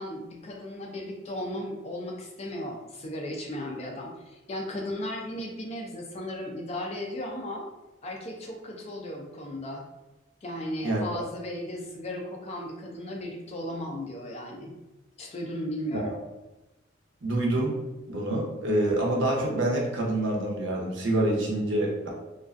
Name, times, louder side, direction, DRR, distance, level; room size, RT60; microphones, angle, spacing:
voice 1, 0.0-7.7 8.0-9.8 10.4-14.7 15.2-16.2, left 1 dB, 30° left, 1 dB, 0.3 m, -36 dB
voice 2, 17.2-17.7 18.1-22.1, right 1 dB, 65° right, -1 dB, 0.6 m, -26 dB
2.4 x 2.3 x 2.4 m, 1.0 s
head